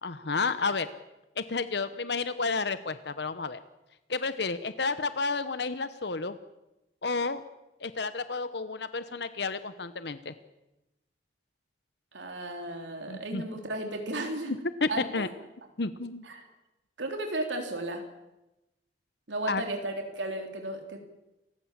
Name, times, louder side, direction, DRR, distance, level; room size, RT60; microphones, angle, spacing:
voice 1, 0.0-0.9 1.4-3.6 4.1-6.4 7.0-7.4 7.8-10.3 13.1-13.4 14.5-15.3 15.8-16.2 19.5-19.6, left 4 dB, 70° left, 12 dB, 1.0 m, -31 dB
voice 2, 12.1-14.6 14.9-15.3 16.2-16.5 17.0-18.0 19.3-21.0, right 2 dB, 90° right, 3 dB, 3.4 m, -34 dB
28.5 x 16.0 x 7.5 m, 0.97 s
head